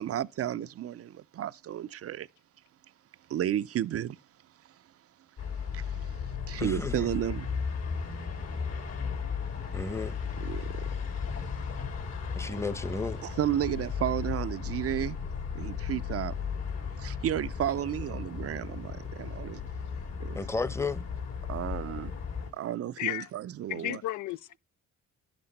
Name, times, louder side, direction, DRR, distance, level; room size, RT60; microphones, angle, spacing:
voice 1, 0.0-2.3 3.3-4.2 5.7-5.9 6.4-7.5 10.4-10.6 13.2-15.2 15.5-16.3 17.0-19.6 20.2-20.4 21.5-22.1 22.5-24.0, right 11 dB, 50° right, 0.5 m, -32 dB
sound 1, 5.4-22.5, left 6 dB, 60° left, 2.7 m, -35 dB
voice 2, 6.6-7.1 9.7-10.2 12.4-13.2 20.3-21.0, left 3 dB, 10° left, 0.9 m, -33 dB
voice 3, 23.0-23.3 23.7-24.6, left 15 dB, 75° left, 0.5 m, -33 dB
11.0 x 7.8 x 4.0 m
cardioid pair, 90°, 30 cm